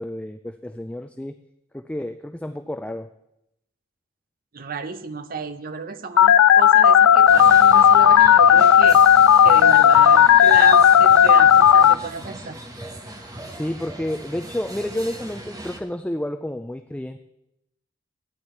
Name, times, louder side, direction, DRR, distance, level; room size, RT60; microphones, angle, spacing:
voice 1, 0.0-1.4 1.7-3.1 13.2-17.2, left 1 dB, 5° left, 8 dB, 0.3 m, -30 dB
voice 2, 4.5-9.0 9.4-12.6, right 4 dB, 45° right, 9 dB, 0.6 m, -31 dB
Telephone, 6.2-11.9, left 9 dB, 90° left, 0.3 m, -13 dB
sound 1, 7.3-15.8, equal, 15° right, 1.1 m, -38 dB
15.0 x 9.8 x 4.4 m, 0.85 s
head